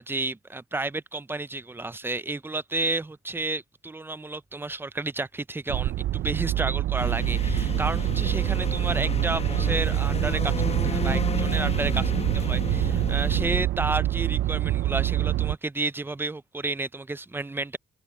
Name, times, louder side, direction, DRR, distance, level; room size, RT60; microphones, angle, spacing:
voice 1, 0.0-10.5 10.8-17.8, right 2 dB, 10° right, 0.5 m, -31 dB
sound 1, 5.7-15.6, right 14 dB, 70° right, 0.5 m, -26 dB
sound 2, 7.0-13.7, left 5 dB, 30° left, 1.1 m, -32 dB
cardioid pair, 90°, 20 cm